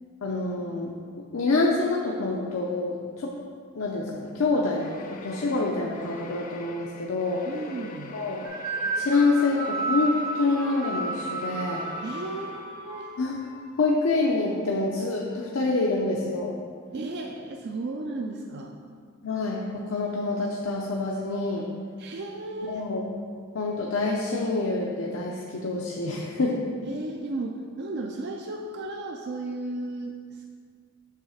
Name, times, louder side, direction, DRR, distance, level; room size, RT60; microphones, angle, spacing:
voice 1, 0.2-0.9 1.3-3.3 3.7-7.4 8.1-8.5 9.0-11.8 13.2-13.4 13.8-16.6 19.2-21.7 22.6-23.1 23.5-26.6, left 3 dB, 80° left, -2 dB, 0.7 m, -26 dB
sound 1, 4.8-13.1, left 3 dB, 40° left, 0.5 m, -44 dB
voice 2, 7.4-8.2 12.0-13.1 16.9-18.7 22.0-22.9 26.8-30.5, right 2 dB, 55° right, 2 dB, 0.4 m, -34 dB
sound 2, 8.4-13.5, right 3 dB, 90° right, 1.5 m, -32 dB
8.2 x 3.2 x 6.3 m, 2.1 s
head